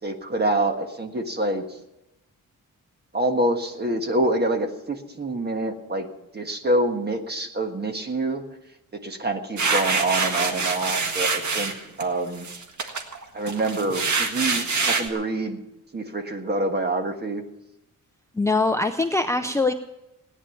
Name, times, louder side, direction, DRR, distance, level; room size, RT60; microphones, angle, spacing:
voice 1, 0.0-1.8 3.1-8.4 8.9-11.7 12.0-12.5 13.3-15.6 15.9-17.4, right 2 dB, 30° right, 5 dB, 1.5 m, -26 dB
sound 1, 9.6-12.0 12.4-15.1, right 4 dB, 60° right, 1.7 m, -25 dB
voice 2, 18.3-19.7, left 3 dB, 10° left, 7 dB, 0.5 m, -23 dB
17.5 x 10.0 x 7.1 m, 0.93 s
wide cardioid pair, 150°, 34 cm